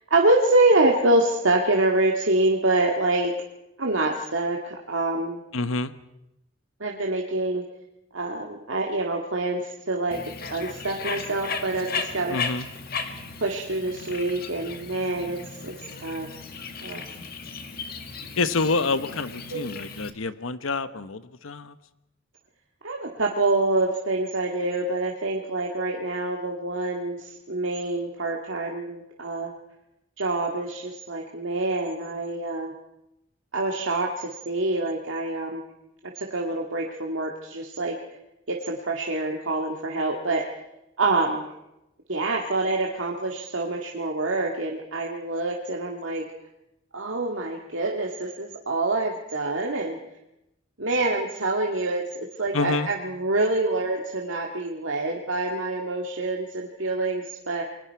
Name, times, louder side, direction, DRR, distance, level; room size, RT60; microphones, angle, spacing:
voice 1, 0.1-3.3 3.8-5.4 6.8-7.6 8.1-10.2 10.5-12.4 13.4-15.7 16.0-16.3 16.8-17.0 19.5-19.7 22.8-29.5 30.2-32.7 33.5-35.6 36.2-38.0 38.5-40.4 41.0-41.5 42.1-46.2 46.9-50.0 50.8-57.6, right 2 dB, 75° right, 0 dB, 2.0 m, -26 dB
voice 2, 5.5-5.9 12.3-12.7 18.4-21.8 52.5-52.9, left 3 dB, 90° left, 13 dB, 1.1 m, -27 dB
Bird, 10.1-20.1, left 5 dB, 50° left, 1.9 m, -36 dB
28.5 x 22.0 x 4.7 m, 0.89 s
head